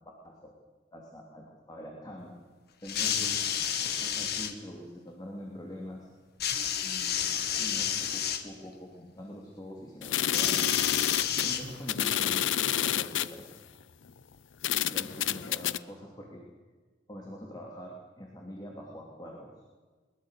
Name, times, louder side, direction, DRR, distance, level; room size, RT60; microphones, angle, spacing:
voice 1, 0.9-2.3 2.8-3.4 4.0-6.1 6.8-10.7 11.4-13.5 14.9-16.4 17.1-19.5, equal, 20° left, -1 dB, 3.1 m, -44 dB
sound 1, 2.8-4.5 6.4-8.4 10.3-12.0 13.0-13.1, left 8 dB, 55° left, 1.7 m, -30 dB
sound 2, 10.0-13.3 14.1-14.2 14.6-15.8, left 11 dB, 75° left, 0.6 m, -29 dB
21.5 x 21.0 x 6.6 m, 1.4 s
head